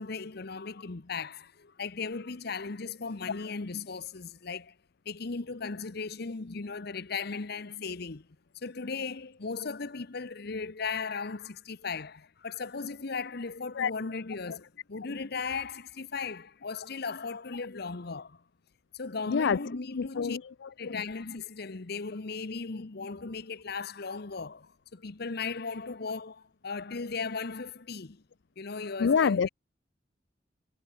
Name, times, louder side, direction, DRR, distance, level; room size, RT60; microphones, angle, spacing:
voice 1, 0.0-4.7 5.0-8.3 8.5-18.4 18.9-20.4 20.8-28.2 28.6-29.4, left 4 dB, 60° left, 0.9 m, -37 dB
voice 2, 19.3-19.6 20.0-21.0 29.0-29.5, left 6 dB, 80° left, 0.4 m, -27 dB
head